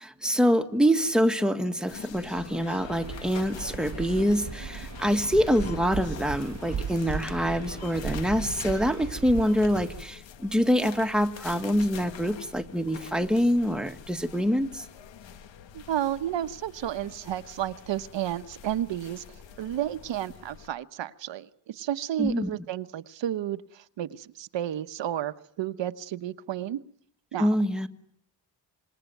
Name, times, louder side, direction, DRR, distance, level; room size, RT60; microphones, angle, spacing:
voice 1, 0.0-14.8 22.2-22.5 27.4-27.9, equal, ahead, 7 dB, 1.6 m, -25 dB
sound 1, 1.9-20.7, left 8 dB, 90° left, 1.8 m, -45 dB
Waves surf, 2.8-10.1, right 7 dB, 35° right, 1.0 m, -37 dB
voice 2, 15.7-19.2 19.6-26.8 27.3-27.5, right 11 dB, 75° right, 11 dB, 1.2 m, -32 dB
26.5 x 21.0 x 9.2 m, 0.67 s
cardioid pair, 125°, 44 cm